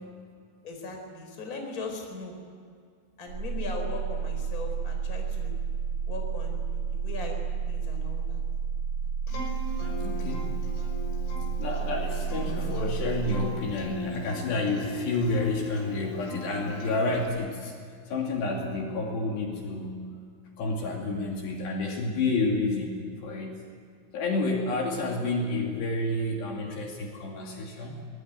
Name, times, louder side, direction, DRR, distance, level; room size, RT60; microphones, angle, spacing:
voice 1, 0.6-2.4 3.2-5.6 6.1-8.4 9.7-10.2, left 3 dB, 20° left, 3 dB, 4.2 m, -39 dB
sound 1, 3.3-13.4, right 6 dB, 70° right, 10.0 m, -31 dB
Acoustic guitar, 9.3-17.3, left 3 dB, 90° left, 8.0 m, -40 dB
voice 2, 10.0-10.5 11.6-17.7 18.1-20.2 20.6-23.6 24.1-28.1, left 2 dB, 60° left, 0 dB, 4.5 m, -29 dB
25.0 x 20.0 x 9.4 m, 2.2 s
omnidirectional pair, 5.6 m